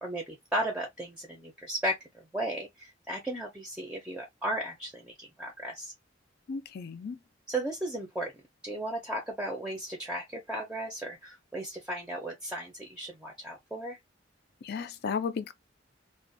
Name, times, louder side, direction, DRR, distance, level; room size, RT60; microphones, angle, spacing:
voice 1, 0.0-5.9 7.5-8.3 8.6-14.0, right 1 dB, 5° right, 0.6 m, -35 dB
voice 2, 6.5-7.2 14.6-15.5, left 5 dB, 55° left, 0.4 m, -34 dB
2.4 x 2.2 x 2.5 m
head